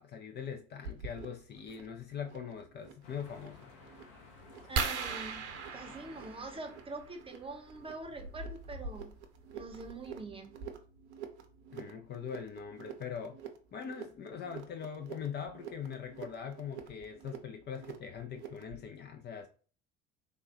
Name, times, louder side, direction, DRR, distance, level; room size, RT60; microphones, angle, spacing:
voice 1, 0.0-3.7 11.7-13.4 13.7-19.5, left 7 dB, 30° left, 0.5 m, -42 dB
sound 1, 0.8-18.9, right 5 dB, 70° right, 0.7 m, -49 dB
sound 2, 3.0-8.0, left 4 dB, 60° left, 1.1 m, -57 dB
voice 2, 4.7-5.4 5.7-9.1 9.5-10.6, right 2 dB, 15° right, 0.8 m, -44 dB
sound 3, 4.8-7.1 8.7-8.9 9.5-9.6 9.9-10.1, right 5 dB, 45° right, 0.9 m, -37 dB
3.5 x 2.3 x 3.9 m
figure-of-eight pair, 65°, 34 cm